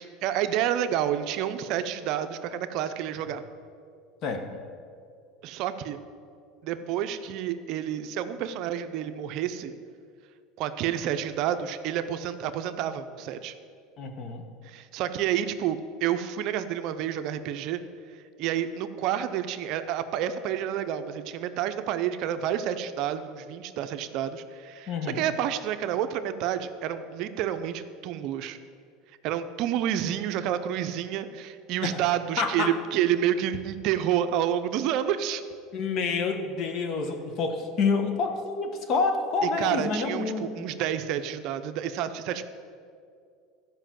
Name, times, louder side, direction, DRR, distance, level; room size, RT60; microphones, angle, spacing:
voice 1, 0.0-3.4 5.4-6.0 6.6-9.7 10.6-13.5 14.6-17.8 18.4-28.6 29.2-35.4 39.4-42.4, right 10 dB, 55° right, 10 dB, 0.6 m, -29 dB
voice 2, 4.2-4.6 14.0-14.5 24.9-25.2 31.8-32.1 32.4-32.7 35.7-40.7, left 4 dB, 45° left, 6 dB, 1.3 m, -28 dB
12.5 x 5.3 x 7.5 m, 2.3 s
supercardioid pair, 130°, 0 cm